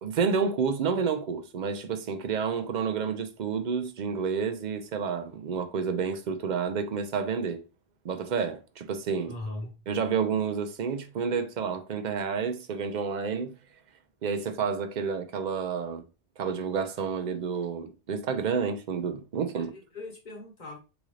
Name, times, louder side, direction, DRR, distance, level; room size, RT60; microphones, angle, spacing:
voice 1, 0.0-7.6 8.0-9.3 9.9-13.5 14.2-16.0 16.4-19.7, right 6 dB, 55° right, 0.6 m, -30 dB
voice 2, 9.3-9.7 19.5-20.8, left 2 dB, 45° left, 1.1 m, -39 dB
3.9 x 2.5 x 3.1 m
omnidirectional pair, 1.1 m